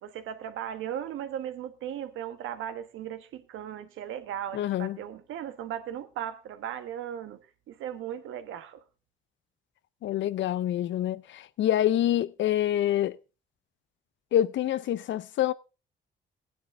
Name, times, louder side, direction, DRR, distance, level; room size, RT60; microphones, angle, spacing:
voice 1, 0.0-7.4 7.7-8.8, right 10 dB, 85° right, 1.3 m, -37 dB
voice 2, 4.5-5.0 10.0-13.2 14.3-15.5, left 12 dB, 70° left, 0.6 m, -26 dB
16.0 x 9.9 x 3.5 m
cardioid pair, 90°, 20 cm